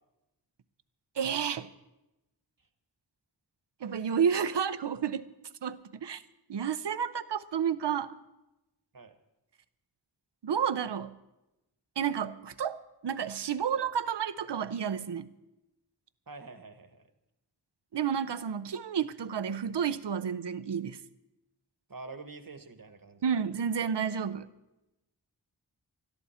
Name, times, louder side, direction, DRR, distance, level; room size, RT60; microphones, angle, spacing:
voice 1, 1.2-1.7 3.8-5.2 5.6-6.2 6.5-8.2 10.4-11.1 12.0-15.3 17.9-21.0 23.2-24.5, right 7 dB, 85° right, 13 dB, 0.6 m, -31 dB
voice 2, 16.3-17.1 21.9-23.4, right 3 dB, 55° right, 10 dB, 1.2 m, -46 dB
20.5 x 12.5 x 4.3 m, 0.96 s
wide cardioid pair, 50°, 41 cm